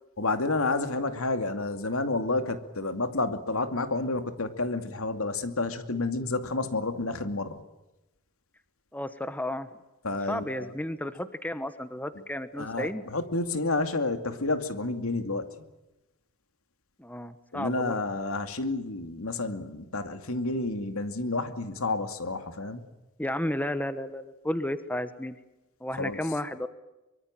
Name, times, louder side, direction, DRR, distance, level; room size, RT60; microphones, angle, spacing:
voice 1, 0.2-7.6 10.0-10.7 12.6-15.5 17.5-22.8 25.9-26.2, left 2 dB, 75° left, 8 dB, 2.5 m, -30 dB
voice 2, 8.9-9.7 10.3-13.0 17.0-17.9 23.2-25.4 25.8-26.7, left 1 dB, 10° left, 11 dB, 1.1 m, -32 dB
24.0 x 24.0 x 7.6 m, 1.0 s
head